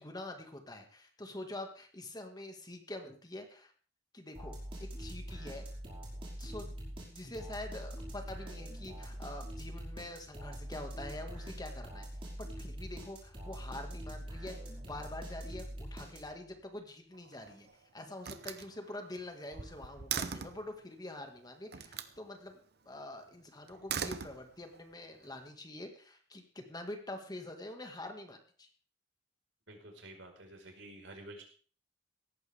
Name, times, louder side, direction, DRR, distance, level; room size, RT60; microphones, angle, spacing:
voice 1, 0.0-3.7 4.1-5.7 6.4-6.7 7.1-12.1 12.4-17.7 17.9-28.7, left 1 dB, 20° left, 5 dB, 2.0 m, -46 dB
sound 1, 4.3-16.5, equal, 30° right, 5.4 m, -44 dB
Slam, 17.1-17.7 18.2-20.7 21.7-22.2 23.7-24.8, right 7 dB, 60° right, 1.0 m, -40 dB
voice 2, 29.7-31.4, right 1 dB, 80° right, 2 dB, 5.0 m, -50 dB
17.0 x 14.0 x 3.6 m, 0.42 s
head